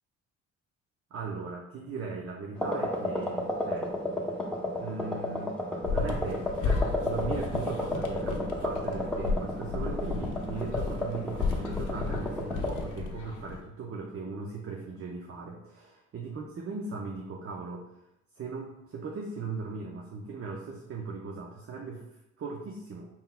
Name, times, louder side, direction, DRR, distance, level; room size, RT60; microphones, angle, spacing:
voice 1, 1.1-3.9 4.8-5.5 5.9-17.9 18.4-22.0 22.4-23.1, right 4 dB, 50° right, 0 dB, 0.7 m, -38 dB
sound 1, 2.6-12.9, left 1 dB, 5° left, 0.8 m, -33 dB
sound 2, 5.8-13.6, left 4 dB, 80° left, 0.7 m, -33 dB
4.4 x 3.6 x 2.2 m, 0.86 s
cardioid pair, 90°, 30 cm